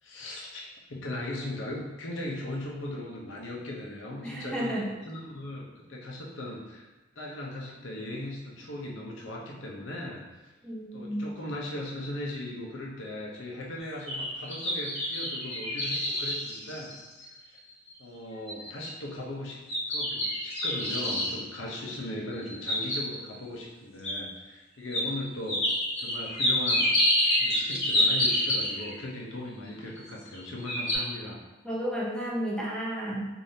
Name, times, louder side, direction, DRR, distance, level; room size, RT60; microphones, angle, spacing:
voice 1, 0.0-6.9 7.2-10.2 10.9-16.9 17.4-17.6 18.0-19.6 19.9-25.7 26.0-26.9 27.4-31.4, left 1 dB, 90° left, -2 dB, 0.8 m, -38 dB
voice 2, 4.2-4.9 10.6-11.3 31.6-33.3, equal, 5° left, -5 dB, 0.7 m, -32 dB
sound 1, 13.8-17.4 17.9-18.0 18.5-18.8 19.7-21.3 22.3-23.3 24.0-24.1 24.9-25.1 25.5-28.9 30.0-30.4 30.7-31.0, left 1 dB, 35° left, 1.1 m, -27 dB
4.9 x 2.7 x 2.7 m, 1.1 s
head